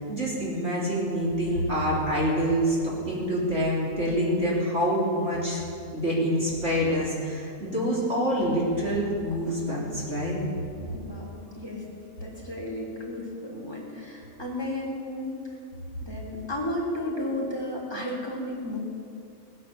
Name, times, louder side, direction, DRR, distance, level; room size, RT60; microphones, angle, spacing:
voice 1, 0.1-5.6 5.9-10.4, equal, 45° right, -6 dB, 4.0 m, -26 dB
voice 2, 10.7-11.8 12.2-15.4 16.0-18.8, left 1 dB, 15° left, -3 dB, 3.7 m, -33 dB
20.0 x 9.9 x 7.2 m, 2.4 s
omnidirectional pair, 1.6 m